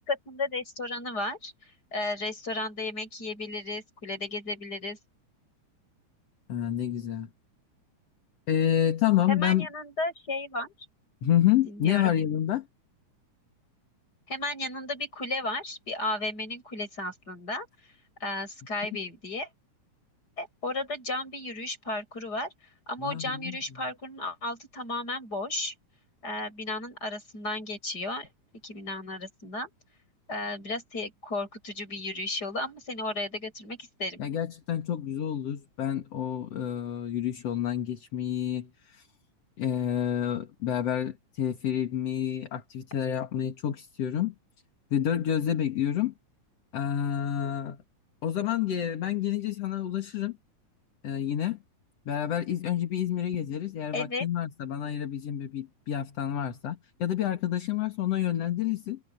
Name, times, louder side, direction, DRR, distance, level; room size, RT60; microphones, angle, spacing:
voice 1, 0.0-5.0 9.3-10.7 11.7-12.1 14.3-17.7 18.2-19.5 20.4-22.5 22.9-25.7 26.2-28.3 28.6-29.7 30.3-34.2 53.9-54.3, left 2 dB, 30° left, 8.5 m, -34 dB
voice 2, 6.5-7.3 8.5-9.7 11.2-12.7 23.0-23.6 34.2-39.1 39.6-44.3 44.9-46.1 46.7-47.8 48.2-50.4 51.0-51.6 52.1-59.0, left 10 dB, 55° left, 2.9 m, -28 dB
omnidirectional pair, 3.5 m